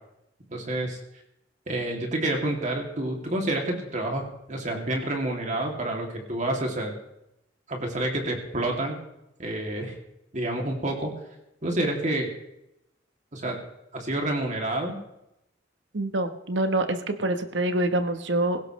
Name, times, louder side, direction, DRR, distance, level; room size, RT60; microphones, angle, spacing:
voice 1, 0.5-1.0 1.7-4.2 4.5-6.9 7.7-9.0 9.4-10.0 10.3-11.1 11.6-12.3 13.3-13.6 13.9-15.0, right 1 dB, 40° right, 1 dB, 2.7 m, -28 dB
voice 2, 15.9-18.6, right 1 dB, 70° right, 8 dB, 1.2 m, -26 dB
18.0 x 16.5 x 3.2 m, 0.85 s
head